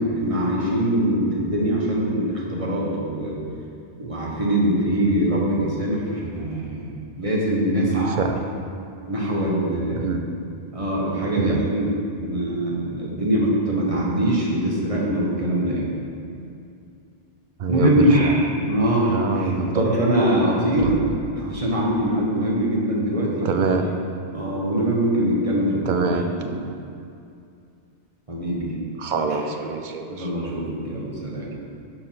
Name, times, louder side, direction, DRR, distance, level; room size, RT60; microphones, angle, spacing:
voice 1, 0.0-3.3 4.0-6.9 7.1-8.5 9.1-10.1 10.7-11.9 12.1-15.9 17.7-21.0 21.3-23.5 24.3-26.5 28.3-28.7 29.3-29.4 30.1-31.6, right 1 dB, 30° right, -4 dB, 1.3 m, -23 dB
voice 2, 7.9-8.4 10.0-10.2 11.4-11.6 17.6-18.3 19.1-19.8 20.8-20.9 23.4-23.9 25.9-26.3 29.0-30.3, right 4 dB, 55° right, 5 dB, 0.6 m, -25 dB
6.5 x 4.7 x 5.7 m, 2.5 s
omnidirectional pair, 1.2 m